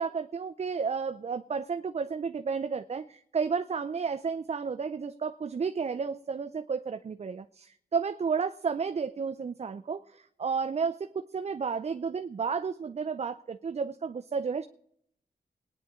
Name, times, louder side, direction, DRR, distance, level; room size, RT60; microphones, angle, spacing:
voice 1, 0.0-14.7, right 5 dB, 40° right, 8 dB, 0.5 m, -32 dB
21.5 x 9.8 x 3.7 m, 0.69 s
wide cardioid pair, 95°, 17 cm